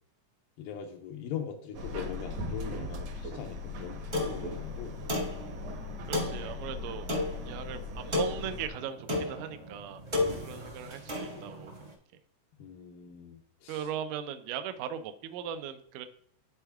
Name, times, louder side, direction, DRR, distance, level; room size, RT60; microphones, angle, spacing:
voice 1, 0.6-5.0 10.2-10.5 12.6-13.9, left 7 dB, 85° left, 2 dB, 2.4 m, -41 dB
Subway metro underground, 1.7-8.7, left 3 dB, 65° right, 1.7 m, -39 dB
sound 1, 4.1-11.9, left 2 dB, 45° right, 0.8 m, -35 dB
voice 2, 6.1-7.1 7.5-10.0 10.4-11.9 13.7-16.1, right 9 dB, 80° right, 9 dB, 2.0 m, -38 dB
12.5 x 4.4 x 2.3 m, 0.66 s
omnidirectional pair, 3.9 m